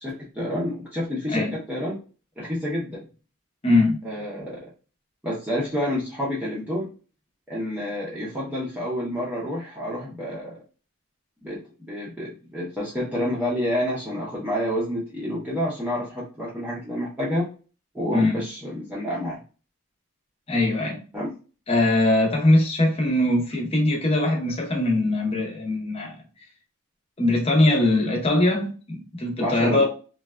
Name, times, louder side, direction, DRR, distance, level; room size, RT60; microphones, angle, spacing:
voice 1, 0.0-2.0 2.4-3.1 4.0-4.7 5.2-6.9 7.5-10.6 11.4-17.5 17.9-19.4 21.1-21.3 29.4-29.8, equal, 5° right, 0.6 m, -29 dB
voice 2, 3.6-4.0 18.1-18.4 20.5-21.0 21.7-26.2 27.2-29.8, left 2 dB, 25° left, 0.7 m, -21 dB
3.1 x 2.3 x 2.2 m
head